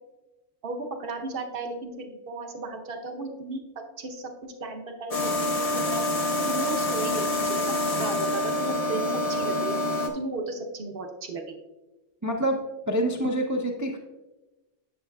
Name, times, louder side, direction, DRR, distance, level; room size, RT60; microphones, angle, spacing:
voice 1, 0.6-3.6 4.0-4.3 4.6-6.0 6.5-9.8 10.1-11.4, right 3 dB, 60° right, 4 dB, 1.0 m, -35 dB
sound 1, 5.1-10.1, left 1 dB, 40° left, 0.6 m, -26 dB
voice 2, 12.2-12.6 12.9-14.0, right 1 dB, 25° right, 0 dB, 0.4 m, -26 dB
10.5 x 6.6 x 2.3 m, 1.1 s
omnidirectional pair, 1.1 m